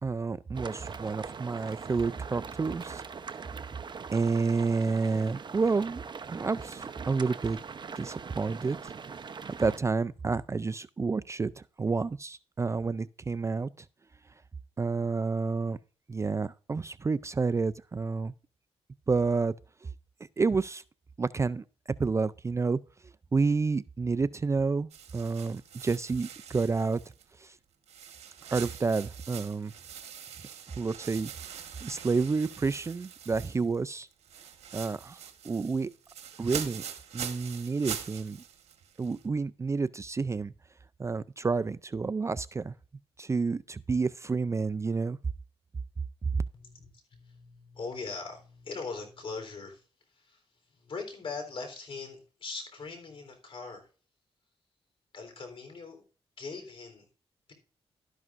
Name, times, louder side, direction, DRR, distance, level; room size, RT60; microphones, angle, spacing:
voice 1, 0.0-3.0 4.1-6.0 6.3-7.6 8.0-8.8 9.6-13.7 14.8-15.8 16.1-18.3 19.1-19.5 20.4-20.8 21.2-21.6 22.0-22.8 23.3-27.0 27.4-27.5 28.5-29.7 30.8-31.3 31.8-34.1 34.7-35.2 35.4-35.9 36.4-36.9 37.1-38.4 39.0-40.5 41.0-42.7 43.2-45.2, right 4 dB, 25° right, 0.4 m, -29 dB
sound 1, 0.5-9.8, right 5 dB, 45° right, 0.8 m, -42 dB
sound 2, 24.9-27.5 27.9-33.8 34.1-39.3, right 8 dB, 85° right, 1.3 m, -43 dB
voice 2, 46.5-49.8 50.2-50.4 50.7-53.9 55.1-56.0 56.4-57.1, left 4 dB, 60° left, 3.7 m, -41 dB
12.5 x 11.0 x 2.5 m
cardioid pair, 90°, 11 cm